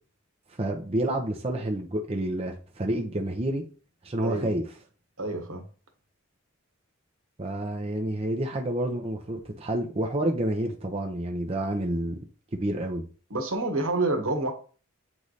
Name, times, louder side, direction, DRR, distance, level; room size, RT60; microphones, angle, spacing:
voice 1, 0.6-3.6 4.0-4.6 7.4-12.2 12.5-13.0, right 1 dB, 30° right, 0.7 m, -29 dB
voice 2, 4.2-4.5 5.2-5.6 13.3-14.5, right 2 dB, 75° right, 1.4 m, -28 dB
8.6 x 3.2 x 4.0 m
head